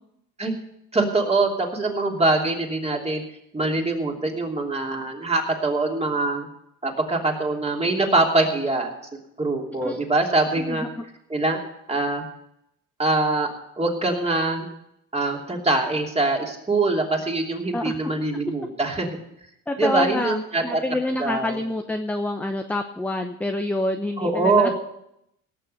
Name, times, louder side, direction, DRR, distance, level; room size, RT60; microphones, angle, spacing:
voice 1, 0.9-3.2 3.5-6.5 6.8-8.9 9.4-10.8 11.3-11.6 11.9-12.2 13.0-13.5 13.8-14.7 15.1-19.2 19.8-20.8 21.2-21.6 24.2-24.7, right 2 dB, 15° right, 1 dB, 2.9 m, -23 dB
voice 2, 9.7-10.0 10.6-11.0 17.7-18.0 18.4-18.5 19.7-20.4 20.6-24.7, left 1 dB, 5° left, 5 dB, 0.9 m, -27 dB
18.0 x 6.8 x 6.7 m, 0.78 s
supercardioid pair, 100°, 35 cm